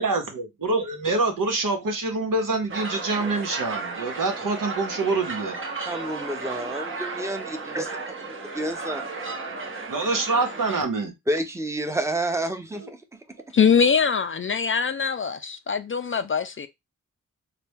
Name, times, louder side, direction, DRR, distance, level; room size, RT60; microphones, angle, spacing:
voice 1, 0.0-5.6 9.9-11.1 12.7-12.9, right 3 dB, 75° right, 1.1 m, -26 dB
sound 1, 2.7-10.8, right 3 dB, 40° right, 0.9 m, -34 dB
voice 2, 5.9-8.0 8.6-9.0 11.3-13.0, right 1 dB, 10° right, 0.8 m, -29 dB
voice 3, 13.5-16.7, left 6 dB, 40° left, 0.4 m, -22 dB
4.1 x 2.2 x 3.5 m
cardioid pair, 55°, 32 cm